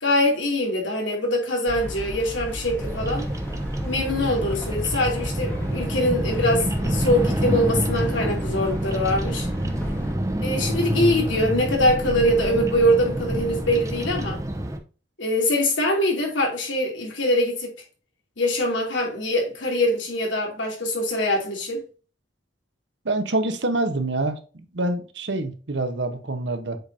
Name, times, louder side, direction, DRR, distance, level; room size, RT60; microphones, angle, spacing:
voice 1, 0.0-3.3 3.9-9.5 10.4-14.4 15.2-17.7 18.4-21.8, left 1 dB, 85° left, 2.7 m, -23 dB
sound 1, 1.7-10.1, equal, 10° left, 1.2 m, -34 dB
Bird vocalization bird call bird song, 2.8-14.8, right 1 dB, 15° right, 0.7 m, -27 dB
voice 2, 23.0-24.4 24.7-26.8, right 2 dB, 75° right, 1.0 m, -26 dB
7.9 x 5.1 x 2.7 m
head